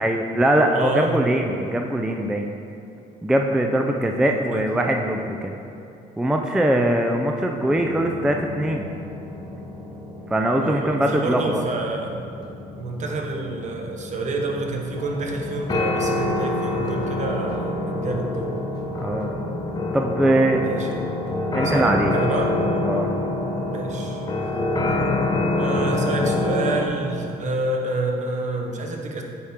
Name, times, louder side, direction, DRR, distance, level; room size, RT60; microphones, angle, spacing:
voice 1, 0.0-2.5 3.2-5.5 6.2-8.9 10.3-11.6 19.0-19.3 19.9-20.6 21.5-22.1 22.8-23.1, right 1 dB, 5° right, 2 dB, 0.3 m, -21 dB
voice 2, 0.5-1.5 4.2-4.7 10.6-12.2 12.8-18.5 20.6-21.1 21.6-22.6 23.7-24.6 25.5-29.2, right 2 dB, 45° right, 1 dB, 0.9 m, -28 dB
sound 1, 7.6-26.9, left 2 dB, 25° left, 0.7 m, -27 dB
8.4 x 4.3 x 3.5 m, 2.7 s
cardioid pair, 110°, 17 cm